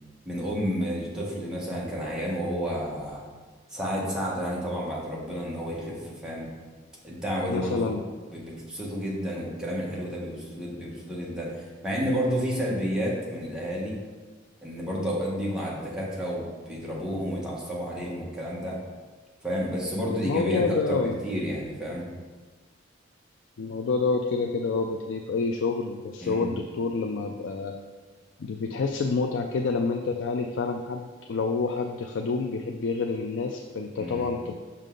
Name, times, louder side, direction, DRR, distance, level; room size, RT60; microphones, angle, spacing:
voice 1, 0.2-3.2 3.7-6.5 7.0-7.9 8.3-14.0 14.6-18.8 19.4-22.0 26.2-26.5 33.9-34.3, equal, 5° right, -5 dB, 1.4 m, -31 dB
voice 2, 7.5-8.0 20.2-21.2 23.6-27.7 28.4-34.5, left 4 dB, 75° left, 4 dB, 0.4 m, -28 dB
6.4 x 5.4 x 3.8 m, 1.4 s
head